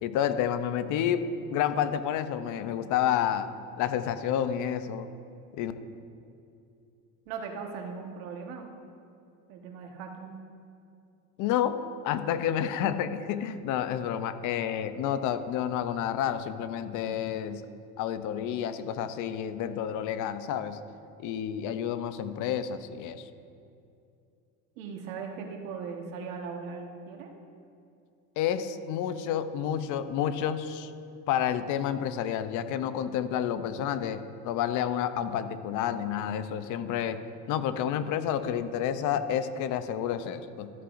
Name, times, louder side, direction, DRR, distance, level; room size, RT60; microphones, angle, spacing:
voice 1, 0.0-3.5 3.8-5.1 5.5-5.7 11.4-17.6 18.0-20.8 21.2-23.3 28.4-30.9 31.3-37.2 37.5-40.7, left 9 dB, 50° left, 11 dB, 0.6 m, -30 dB
voice 2, 7.3-8.7 9.5-10.4 24.8-27.3, right 5 dB, 85° right, 2 dB, 1.5 m, -39 dB
13.0 x 13.0 x 2.6 m, 2.5 s
cardioid pair, 140°, 39 cm